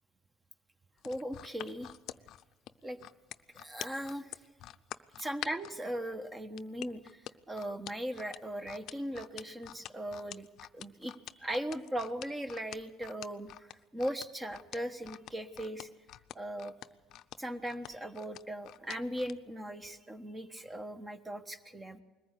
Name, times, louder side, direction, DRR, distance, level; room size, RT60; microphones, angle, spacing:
sound 1, 1.0-5.7 6.6-19.4 19.8-20.0, left 13 dB, 60° left, 0.6 m, -46 dB
voice 1, 1.0-1.9 2.8-3.0 3.5-4.4 5.2-10.5 10.7-15.9 16.3-16.7 17.4-22.0, equal, 15° right, 8 dB, 1.3 m, -39 dB
21.0 x 14.5 x 8.3 m, 1.2 s
supercardioid pair, 80°, 0 cm